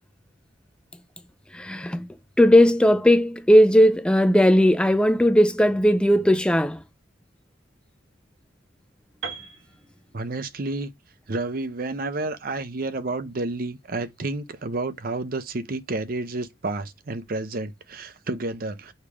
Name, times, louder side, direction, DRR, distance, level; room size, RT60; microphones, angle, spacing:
voice 1, 1.5-2.1 2.4-6.8, equal, 5° left, 0.3 m, -17 dB
Piano, 9.2-13.1, right 6 dB, 85° right, 1.3 m, -42 dB
voice 2, 10.1-10.9 11.3-18.9, right 2 dB, 50° right, 0.6 m, -30 dB
6.6 x 3.5 x 4.9 m
head